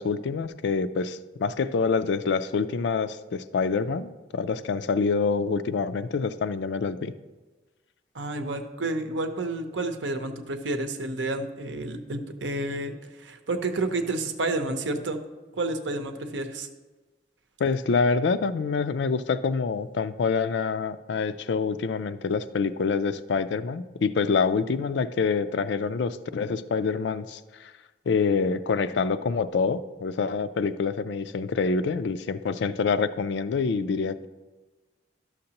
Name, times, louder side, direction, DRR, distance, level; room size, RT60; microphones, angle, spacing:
voice 1, 0.0-7.1 17.6-27.7 28.1-34.3, left 5 dB, 75° left, 13 dB, 0.4 m, -26 dB
voice 2, 8.1-15.2 15.5-16.7, right 2 dB, 90° right, 6 dB, 0.8 m, -30 dB
12.0 x 6.5 x 2.9 m, 1.2 s
head